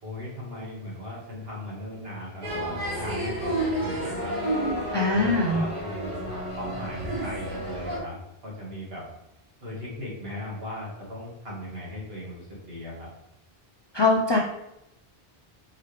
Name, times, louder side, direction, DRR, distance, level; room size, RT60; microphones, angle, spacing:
voice 1, 0.0-4.3 5.1-8.2 8.4-9.0 9.6-13.1, left 1 dB, 70° right, -5 dB, 1.9 m, -38 dB
sound 1, 2.4-8.0, right 1 dB, 50° right, 1.8 m, -30 dB
voice 2, 4.9-5.6 13.9-14.4, left 3 dB, 45° left, -1 dB, 0.3 m, -22 dB
4.7 x 3.1 x 3.2 m, 0.85 s
omnidirectional pair, 1.0 m